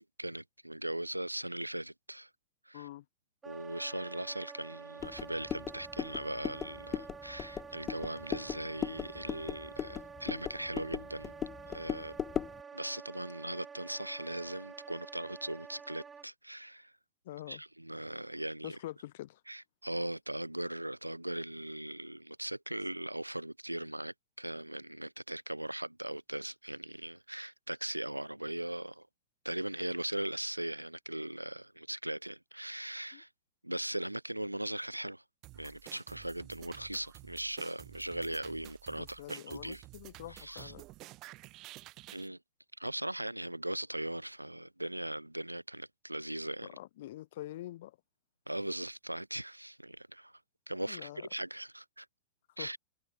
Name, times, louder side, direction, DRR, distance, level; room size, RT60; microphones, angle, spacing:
voice 1, 0.0-2.3 2.7-2.9 3.5-11.3 11.7-12.2 12.7-16.9 17.5-18.8 19.5-29.1 29.4-33.3 33.6-35.2 35.6-39.8 40.3-40.7 42.1-42.4 42.8-46.7 48.5-50.4 50.7-52.1 52.6-52.8, right 1 dB, 85° right, 0.3 m, -39 dB
voice 2, 2.7-3.0 17.2-17.6 18.6-19.4 33.1-33.2 39.0-40.9 46.6-48.0 50.8-51.3 52.6-52.7, left 15 dB, 55° left, 1.5 m, -45 dB
Wind instrument woodwind instrument, 3.4-16.3, right 6 dB, 15° right, 2.6 m, -49 dB
sound 1, 5.0-12.6, left 9 dB, 25° left, 1.2 m, -39 dB
sound 2, 35.4-42.3, right 19 dB, 40° right, 4.5 m, -52 dB
figure-of-eight pair, 90°, 0 cm